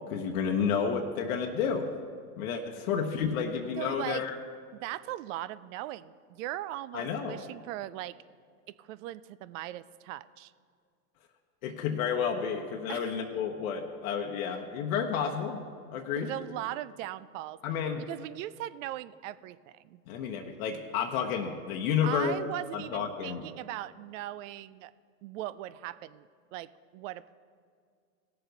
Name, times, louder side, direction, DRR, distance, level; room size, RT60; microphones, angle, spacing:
voice 1, 0.1-1.9 2.4-4.4 6.9-7.4 11.6-15.7 15.9-16.3 17.6-18.0 20.1-22.3 22.7-23.4, left 7 dB, 70° left, 2 dB, 1.0 m, -31 dB
voice 2, 3.8-4.2 4.7-8.1 8.8-10.5 12.9-13.2 16.2-17.6 18.1-20.0 22.0-24.9 25.2-27.3, right 14 dB, 60° right, 17 dB, 0.5 m, -39 dB
16.5 x 6.8 x 3.9 m, 2.1 s
hypercardioid pair, 110°, 43 cm